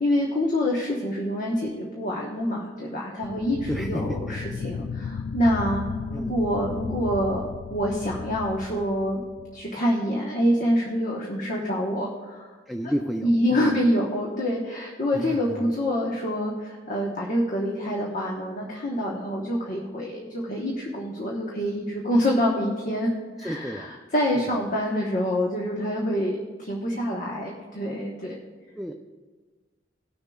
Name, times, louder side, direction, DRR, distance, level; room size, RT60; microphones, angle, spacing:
voice 1, 0.0-9.2 9.5-12.5 12.8-12.9 13.2-23.1 23.4-28.4, equal, 50° left, -2 dB, 1.1 m, -26 dB
sound 1, 3.2-9.7, left 5 dB, 80° left, 0.3 m, -35 dB
voice 2, 3.7-4.4 6.1-6.4 12.7-13.8 15.1-15.7 23.4-23.9 24.3-24.5 28.8-28.9, equal, ahead, 2 dB, 0.4 m, -32 dB
19.0 x 6.6 x 2.3 m, 1.4 s
head